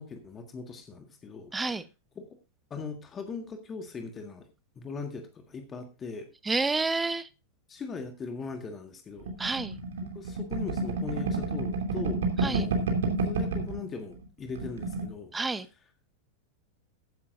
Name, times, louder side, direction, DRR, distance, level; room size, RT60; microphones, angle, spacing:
voice 1, 0.0-1.5 2.1-2.3 2.7-4.5 4.7-6.3 7.7-9.3 10.1-13.0 13.2-15.3, left 4 dB, 20° left, 1.7 m, -39 dB
voice 2, 1.5-1.8 6.4-7.3 9.4-9.8 12.4-12.7 15.3-15.7, right 3 dB, 10° right, 0.8 m, -29 dB
sound 1, 9.3-13.8 14.1-14.2 14.5-15.1, right 3 dB, 60° right, 2.8 m, -29 dB
14.5 x 10.5 x 2.5 m
figure-of-eight pair, 90°, 0 cm